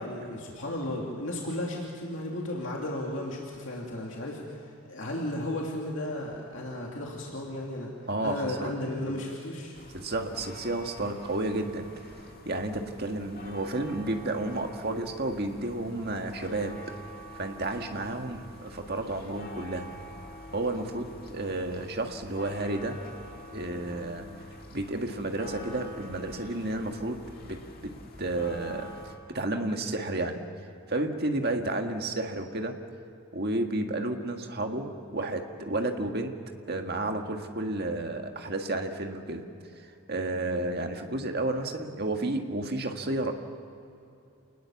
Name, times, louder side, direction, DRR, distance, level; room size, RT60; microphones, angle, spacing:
voice 1, 0.0-7.9 8.2-9.7, left 1 dB, 60° left, -2 dB, 2.8 m, -34 dB
voice 2, 8.1-8.7 9.9-11.9 12.5-16.8 17.3-19.9 20.5-23.0 23.5-27.2 27.4-27.9 28.2-29.0 29.3-30.4 30.9-32.7 33.3-36.3 36.7-39.4 39.8-43.3, right 2 dB, 45° right, 4 dB, 1.7 m, -31 dB
sound 1, 9.7-29.2, equal, 40° left, 2.3 m, -46 dB
28.0 x 19.5 x 7.2 m, 2.7 s
head